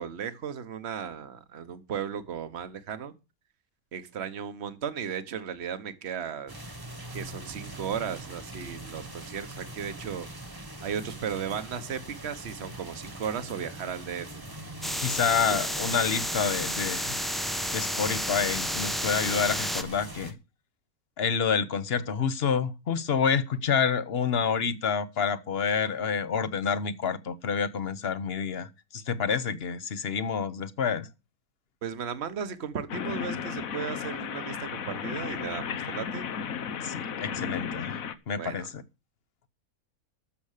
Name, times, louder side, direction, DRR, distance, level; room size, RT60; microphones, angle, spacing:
voice 1, 0.0-3.1 3.9-6.5 7.1-10.3 10.8-14.3 15.5-15.6 31.8-36.3 38.4-38.7, right 7 dB, 50° right, 1.3 m, -35 dB
sound 1, 6.5-20.3, right 2 dB, 15° right, 1.4 m, -42 dB
sound 2, 14.8-19.8, equal, ahead, 0.7 m, -31 dB
voice 2, 15.0-17.2 17.7-20.3 21.2-31.1 36.8-38.0 38.3-38.8, left 6 dB, 50° left, 1.0 m, -28 dB
sound 3, 32.9-38.1, left 7 dB, 70° left, 1.3 m, -34 dB
13.0 x 6.9 x 6.6 m
omnidirectional pair, 1.5 m